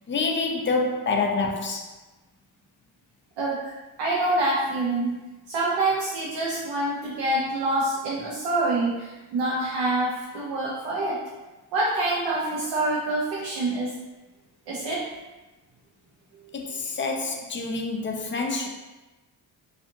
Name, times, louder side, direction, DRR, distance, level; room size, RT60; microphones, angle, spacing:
voice 1, 0.1-1.9 16.5-18.7, left 3 dB, 30° left, 2 dB, 0.4 m, -27 dB
voice 2, 3.4-3.7 4.0-5.1 5.5-11.2 11.7-13.9 14.7-15.0, right 2 dB, 90° right, -6 dB, 0.7 m, -26 dB
2.6 x 2.5 x 2.5 m, 1.1 s
cardioid pair, 75°, 41 cm